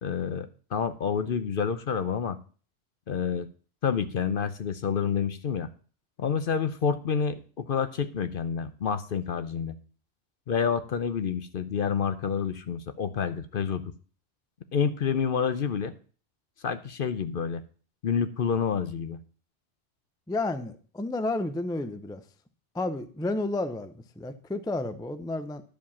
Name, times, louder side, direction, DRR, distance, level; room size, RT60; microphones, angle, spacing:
voice 1, 0.0-2.4 3.1-3.5 3.8-5.7 6.2-9.8 10.5-13.8 14.7-15.9 16.6-17.6 18.0-19.2, left 6 dB, 55° left, 0.8 m, -28 dB
voice 2, 20.3-22.2 22.7-25.6, left 2 dB, 5° left, 0.4 m, -31 dB
11.5 x 5.1 x 7.0 m
omnidirectional pair, 1.2 m